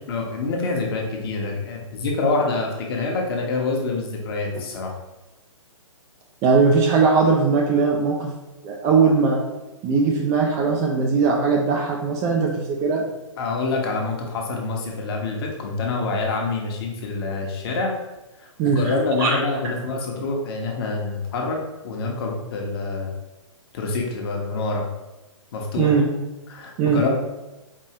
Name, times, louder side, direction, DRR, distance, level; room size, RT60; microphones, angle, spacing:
voice 1, 0.1-4.9 13.4-17.9 18.7-21.6 21.8-23.1 23.7-24.9 25.5-26.0 26.5-27.1, left 3 dB, 45° left, 1 dB, 0.9 m, -26 dB
voice 2, 6.4-8.3 8.6-9.4 9.8-13.0 18.6-18.9 19.2-19.4 25.8-26.1 26.8-27.0, right 4 dB, 20° right, 0 dB, 0.4 m, -19 dB
4.6 x 2.7 x 2.8 m, 1.0 s
hypercardioid pair, 130°, 17 cm